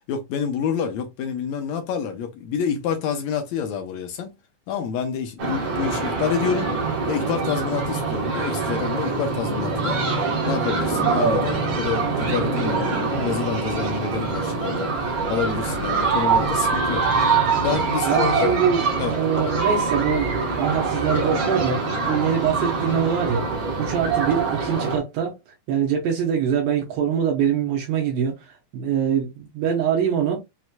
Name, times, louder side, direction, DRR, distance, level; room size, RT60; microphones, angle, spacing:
voice 1, 0.1-4.3 4.7-6.7 7.1-10.0 10.4-17.1 17.6-18.5 19.0-19.1, left 7 dB, 75° left, 1.7 m, -28 dB
sound 1, 5.4-25.0, right 4 dB, 55° right, 2.1 m, -24 dB
voice 2, 18.1-23.5 23.8-25.4 25.7-30.4, right 7 dB, 80° right, 2.7 m, -24 dB
6.1 x 3.0 x 2.2 m
omnidirectional pair, 4.0 m